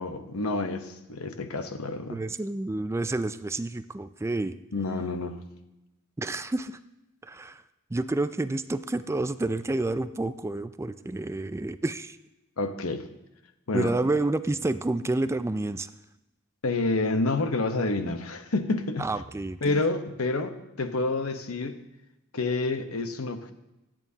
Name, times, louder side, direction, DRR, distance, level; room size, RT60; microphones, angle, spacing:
voice 1, 0.0-2.2 4.7-5.4 12.6-13.1 13.7-13.9 16.6-19.1 19.6-21.8 22.3-23.5, left 3 dB, 75° left, 8 dB, 1.0 m, -28 dB
voice 2, 2.1-4.5 6.2-6.8 7.2-7.6 7.9-12.2 13.7-15.9 19.0-19.8, right 2 dB, 15° right, 12 dB, 0.3 m, -29 dB
27.0 x 9.0 x 2.8 m, 0.95 s
head